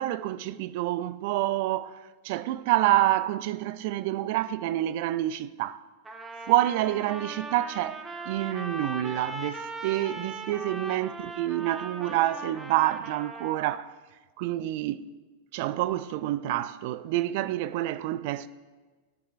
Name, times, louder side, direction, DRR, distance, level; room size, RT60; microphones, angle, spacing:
voice 1, 0.0-5.8 6.4-13.9 14.4-15.1 15.5-18.5, right 14 dB, 55° right, 0.3 m, -28 dB
Trumpet, 6.0-13.8, right 2 dB, 15° right, 1.0 m, -39 dB
15.0 x 6.5 x 2.5 m
figure-of-eight pair, 95°, 0 cm